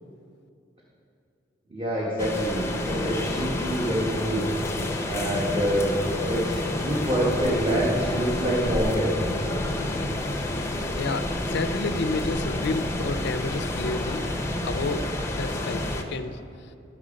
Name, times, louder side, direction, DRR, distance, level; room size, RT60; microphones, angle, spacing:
voice 1, 1.7-4.5 5.0-5.9 6.3-9.1, equal, 30° right, -5 dB, 1.2 m, -26 dB
sound 1, 2.2-16.0, left 1 dB, 15° left, 0.6 m, -29 dB
voice 2, 11.0-14.3 14.6-15.0 15.4-15.8 16.1-16.4, left 3 dB, 65° left, 9 dB, 0.5 m, -30 dB
12.0 x 5.9 x 5.0 m, 2.6 s
head